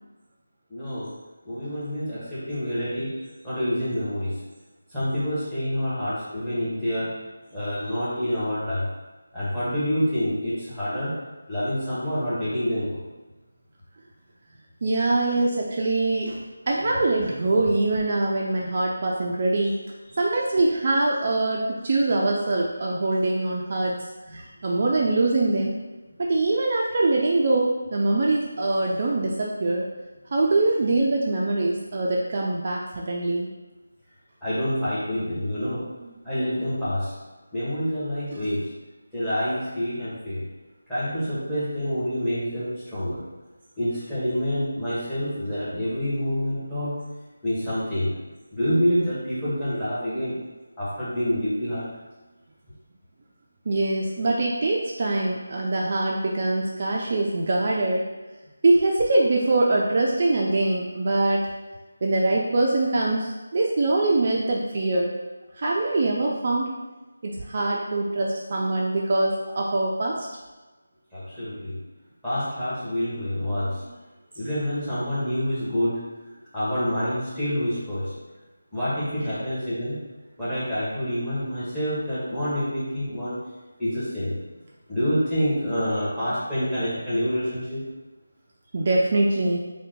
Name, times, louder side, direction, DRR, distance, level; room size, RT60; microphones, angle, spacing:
voice 1, 0.7-1.1 1.5-4.4 4.9-7.2 7.5-8.9 9.3-11.2 11.5-13.0 34.4-35.9 36.2-37.1 37.5-38.7 39.1-40.4 40.9-43.2 43.8-47.0 47.4-48.1 48.5-50.4 50.8-51.9 71.1-71.8 72.2-73.8 74.3-76.0 76.5-78.1 78.7-80.0 80.4-83.4 83.8-84.4 84.9-87.8, equal, 5° left, -12 dB, 1.0 m, -27 dB
voice 2, 14.8-19.7 20.2-24.0 24.3-25.8 26.2-29.9 30.3-33.5 36.0-36.1 53.7-58.1 58.6-61.5 62.0-65.2 65.6-66.7 67.2-70.3 73.5-73.9 88.7-89.6, right 2 dB, 40° right, -2 dB, 0.3 m, -23 dB
2.8 x 2.1 x 3.5 m, 1.2 s
figure-of-eight pair, 170°, 0 cm